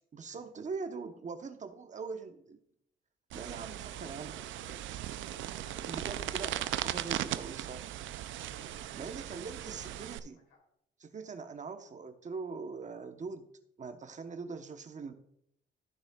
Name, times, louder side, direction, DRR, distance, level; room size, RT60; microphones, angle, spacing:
voice 1, 0.1-2.6 3.3-4.4 5.9-8.0 8.7-10.4 11.0-13.5 13.8-15.1, right 4 dB, 40° right, 8 dB, 0.9 m, -42 dB
voice 2, 3.3-7.6 8.4-9.2 9.4-10.6, left 2 dB, 90° left, 0 dB, 3.1 m, -59 dB
sound 1, 3.3-10.2, right 13 dB, 75° right, 0.4 m, -38 dB
14.0 x 6.3 x 2.3 m, 0.73 s
cardioid pair, 90°, 20 cm